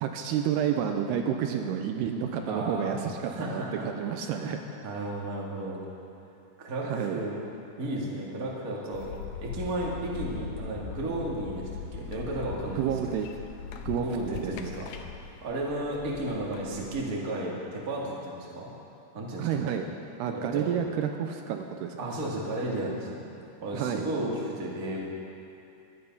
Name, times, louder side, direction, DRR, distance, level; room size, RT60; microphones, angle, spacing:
voice 1, 0.0-4.6 6.8-7.2 12.8-13.3 13.7-14.5 19.4-19.9 20.2-22.0 23.7-24.1, right 8 dB, 85° right, 5 dB, 2.6 m, -30 dB
voice 2, 2.4-3.8 4.2-4.5 4.8-5.8 6.6-7.4 7.8-9.1 9.4-12.9 13.9-14.9 15.4-18.7 19.1-19.7 20.3-20.7 22.0-23.1 23.6-25.0, right 1 dB, 30° right, -4 dB, 1.7 m, -33 dB
sound 1, 8.9-17.0, left 6 dB, 75° left, 2.7 m, -40 dB
23.5 x 8.9 x 5.4 m, 2.7 s
omnidirectional pair, 4.9 m